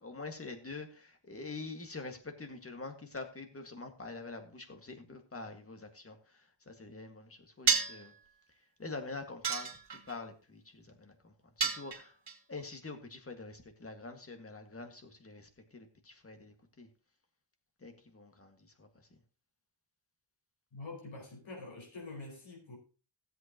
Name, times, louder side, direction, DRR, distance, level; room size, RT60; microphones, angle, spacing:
voice 1, 0.0-8.1 8.8-12.2 12.5-16.9 17.8-19.2, left 3 dB, 30° left, 1.9 m, -46 dB
sound 1, 7.7-8.1 9.4-10.2 11.6-12.3, right 6 dB, 65° right, 2.5 m, -30 dB
voice 2, 20.7-22.8, left 3 dB, 80° left, 4.9 m, -46 dB
16.5 x 7.9 x 2.9 m
wide cardioid pair, 120°, 46 cm